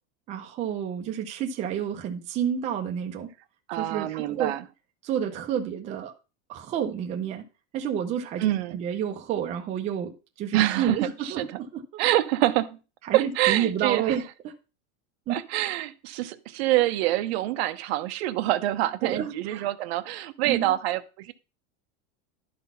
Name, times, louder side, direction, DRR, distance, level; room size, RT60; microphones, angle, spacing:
voice 1, 0.3-3.3 3.8-4.5 5.0-6.1 6.5-7.5 7.7-12.0 13.1-14.5 15.3-15.4 19.0-19.6 20.4-20.7, right 9 dB, 20° right, 0.6 m, -30 dB
voice 2, 3.7-4.6 8.4-8.8 10.5-11.5 12.0-12.8 13.1-14.2 15.3-21.3, right 15 dB, 55° right, 0.7 m, -26 dB
11.0 x 4.1 x 5.5 m
supercardioid pair, 175°, 38 cm